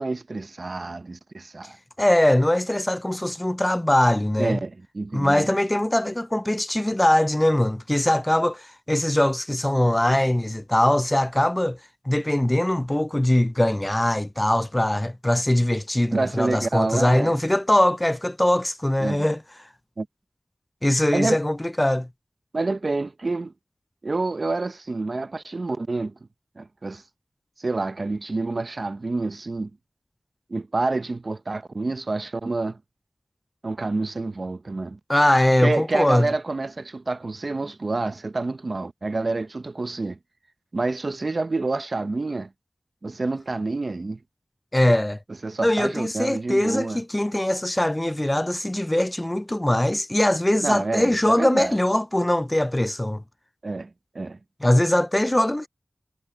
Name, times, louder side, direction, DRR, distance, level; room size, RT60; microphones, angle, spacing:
voice 1, 0.0-1.8 4.4-5.5 16.1-17.4 19.0-19.3 20.0-20.1 21.1-21.4 22.5-23.5 24.0-26.2 26.6-27.0 27.6-29.7 30.5-32.8 33.6-35.0 35.6-40.2 40.7-42.5 43.0-44.2 45.4-47.0 50.6-51.8 53.6-53.9 54.1-54.4, right 3 dB, 65° right, 0.9 m, -28 dB
voice 2, 2.0-4.6 5.1-11.8 12.1-19.4 20.8-22.1 35.1-36.3 44.7-45.2 45.6-53.2 54.6-55.7, left 1 dB, 20° left, 0.5 m, -21 dB
cardioid pair, 40°, 0 cm